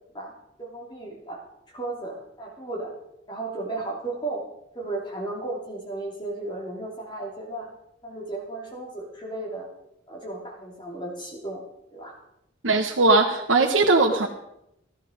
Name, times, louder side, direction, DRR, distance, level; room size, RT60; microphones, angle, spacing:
voice 1, 0.6-1.4 1.7-2.9 3.3-4.5 4.7-7.7 8.0-9.7 10.1-11.6 11.9-12.1, right 2 dB, 25° left, -2 dB, 2.8 m, -34 dB
voice 2, 12.6-14.3, right 3 dB, 80° right, 1 dB, 1.3 m, -19 dB
16.0 x 12.0 x 5.1 m, 0.82 s
head